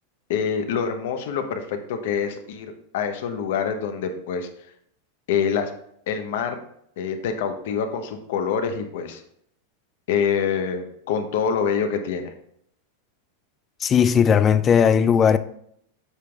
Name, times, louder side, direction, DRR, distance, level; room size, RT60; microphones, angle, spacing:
voice 1, 0.3-4.5 5.3-5.7 6.1-6.6 7.0-9.2 10.1-12.3, left 7 dB, 70° left, 0.8 m, -26 dB
voice 2, 13.8-15.4, left 7 dB, 20° left, 0.3 m, -17 dB
8.2 x 5.4 x 2.4 m
supercardioid pair, 145°, 0 cm